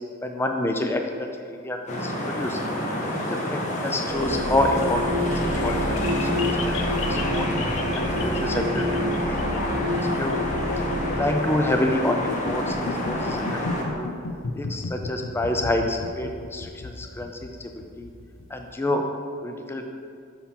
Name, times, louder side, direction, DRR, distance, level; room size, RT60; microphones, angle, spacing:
voice 1, 0.2-1.3 1.6-2.6 3.0-5.3 5.6-6.7 7.1-7.5 7.9-9.4 9.9-10.5 11.1-12.8 13.1-14.1 14.5-18.1 18.5-19.0 19.4-19.9, left 1 dB, 10° left, 4 dB, 0.4 m, -28 dB
sound 1, 1.9-13.8, equal, 35° left, 0.9 m, -28 dB
sound 2, 4.0-11.2, left 1 dB, 75° right, 1.0 m, -28 dB
sound 3, 4.5-18.6, left 4 dB, 70° left, 0.5 m, -34 dB
5.6 x 4.5 x 5.4 m, 2.2 s
head